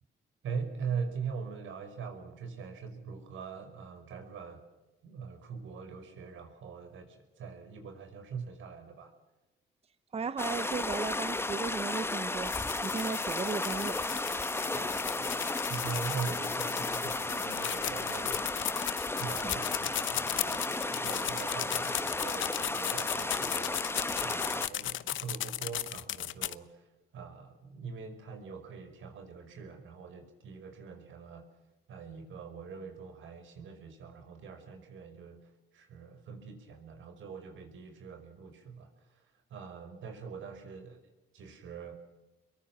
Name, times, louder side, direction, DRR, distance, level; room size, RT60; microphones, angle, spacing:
voice 1, 0.4-4.6 5.0-9.1 14.7-18.4 19.2-31.4 31.9-41.0 41.3-41.9, right 6 dB, 75° right, 5.4 m, -42 dB
voice 2, 10.1-14.0 19.4-19.6, right 5 dB, 30° right, 0.9 m, -36 dB
sound 1, 10.4-24.7, left 2 dB, 10° left, 1.1 m, -34 dB
sound 2, 12.5-26.5, left 13 dB, 75° left, 0.9 m, -36 dB
27.5 x 22.5 x 6.1 m
cardioid pair, 90°, 20 cm